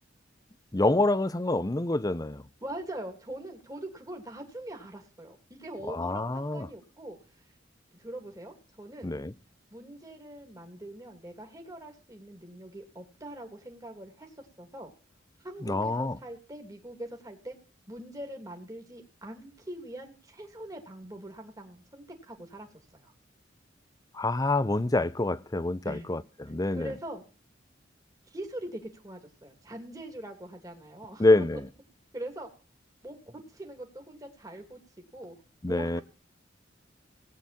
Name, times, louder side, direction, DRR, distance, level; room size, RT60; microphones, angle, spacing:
voice 1, 0.7-2.4 5.9-6.7 9.0-9.3 15.6-16.2 24.1-26.9 31.2-31.6 35.6-36.0, left 2 dB, 20° left, 0.7 m, -26 dB
voice 2, 2.6-7.2 7.9-9.1 9.7-14.9 15.4-17.5 17.9-23.1 25.8-26.1 26.6-27.2 28.3-31.5 32.1-32.5 33.0-34.8 35.1-35.4 35.7-36.0, right 1 dB, 20° right, 2.8 m, -42 dB
18.5 x 8.8 x 4.3 m
head